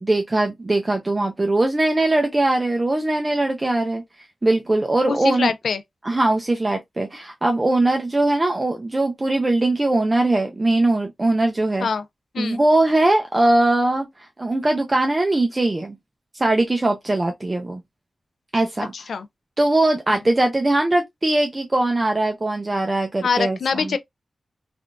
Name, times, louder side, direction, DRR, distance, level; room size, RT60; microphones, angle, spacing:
voice 1, 0.0-4.0 4.4-5.5 6.0-11.9 12.4-14.1 14.4-16.0 16.3-17.8 18.5-18.9 19.6-23.9, right 2 dB, 25° right, 0.5 m, -20 dB
voice 2, 5.1-5.8 11.8-12.0 12.3-12.6 18.8-19.3 20.1-20.2 23.2-24.0, left 5 dB, 80° left, 0.4 m, -24 dB
3.5 x 2.4 x 2.3 m
wide cardioid pair, 115°, 0 cm